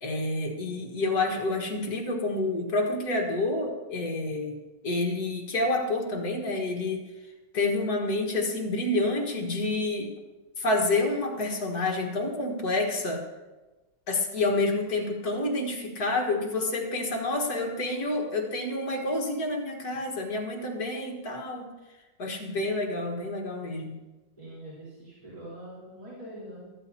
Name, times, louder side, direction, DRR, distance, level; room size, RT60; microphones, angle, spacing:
voice 1, 0.0-4.6 4.8-7.1 7.5-10.1 10.6-13.2 14.1-21.7 22.2-24.0, left 2 dB, 60° left, 1 dB, 2.1 m, -28 dB
voice 2, 24.4-26.7, right 1 dB, 20° right, -10 dB, 3.9 m, -44 dB
14.0 x 13.5 x 2.8 m, 1.1 s
omnidirectional pair, 1.9 m